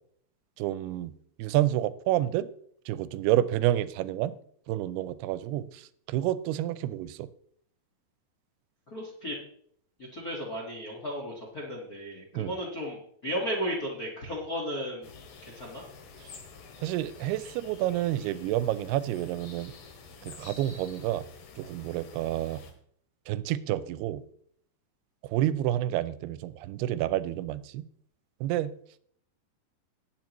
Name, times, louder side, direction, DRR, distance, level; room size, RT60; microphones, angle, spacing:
voice 1, 0.6-1.1 1.4-2.5 2.9-4.4 4.7-7.3 12.3-12.5 16.8-19.7 20.2-21.3 21.6-22.6 23.3-24.2 25.2-27.8 28.4-28.8, right 13 dB, 85° right, 2.6 m, -29 dB
voice 2, 8.9-9.4 10.1-15.1 15.4-15.8, equal, 50° left, 1.1 m, -34 dB
sound 1, 15.0-22.7, left 4 dB, 85° left, 3.7 m, -49 dB
19.0 x 7.5 x 3.0 m
omnidirectional pair, 4.6 m